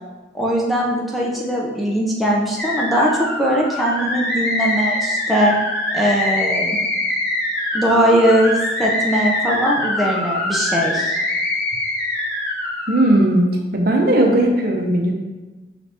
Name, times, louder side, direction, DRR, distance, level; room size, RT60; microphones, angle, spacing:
voice 1, 0.3-5.6 5.9-6.8 7.7-11.2, equal, ahead, -4 dB, 0.5 m, -20 dB
sound 1, 2.6-13.3, left 1 dB, 60° left, 0.9 m, -23 dB
voice 2, 12.9-13.5 13.7-15.1, right 1 dB, 55° right, 1 dB, 0.6 m, -16 dB
4.9 x 2.8 x 3.3 m, 1.2 s
head